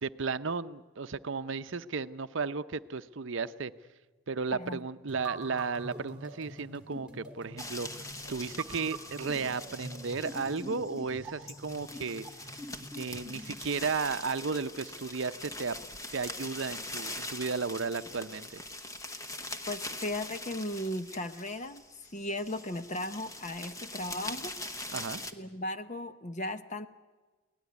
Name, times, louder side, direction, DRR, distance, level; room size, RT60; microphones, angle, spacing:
voice 1, 0.0-3.7 4.3-12.2 12.9-15.8 16.1-18.5 24.9-25.2, right 4 dB, 60° right, 12 dB, 0.7 m, -34 dB
voice 2, 4.5-4.9 19.7-21.8 22.1-24.5 25.3-26.9, left 1 dB, 35° left, 10 dB, 0.8 m, -36 dB
sound 1, 5.1-13.6, right 2 dB, 5° right, 2.8 m, -44 dB
sound 2, 7.6-25.3, left 1 dB, 15° left, 1.1 m, -43 dB
23.5 x 18.0 x 9.5 m, 1.3 s
head